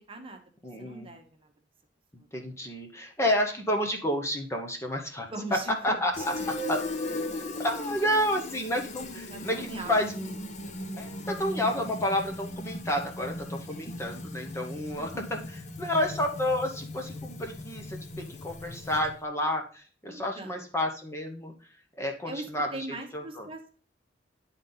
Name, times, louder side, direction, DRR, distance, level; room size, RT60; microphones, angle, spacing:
voice 1, 0.1-0.4 0.8-1.5 2.2-2.3 5.3-6.5 9.3-10.0 10.5-10.7 14.9-15.4 20.1-20.6 22.2-22.5 22.7-23.8, right 2 dB, 30° right, 4 dB, 1.1 m, -41 dB
voice 2, 0.6-1.1 2.3-5.3 5.7-6.3 6.7-10.4 11.0-15.4 15.8-21.5 22.0-22.7 23.1-23.5, left 1 dB, 15° left, 2 dB, 0.9 m, -30 dB
Fill (with liquid), 6.1-19.2, left 2 dB, 40° left, 0.7 m, -38 dB
10.0 x 4.0 x 3.9 m, 0.40 s
head